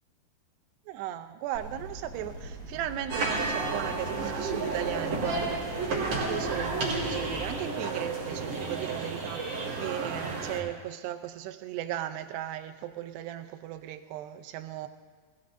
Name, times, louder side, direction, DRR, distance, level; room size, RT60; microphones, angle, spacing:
voice 1, 0.9-14.9, right 12 dB, 85° right, 7 dB, 2.8 m, -36 dB
sound 1, 1.5-7.6, equal, 25° left, 2.7 m, -43 dB
sound 2, 3.1-10.6, right 3 dB, 45° right, 4.1 m, -32 dB
20.5 x 16.0 x 2.6 m, 1.4 s
omnidirectional pair, 4.7 m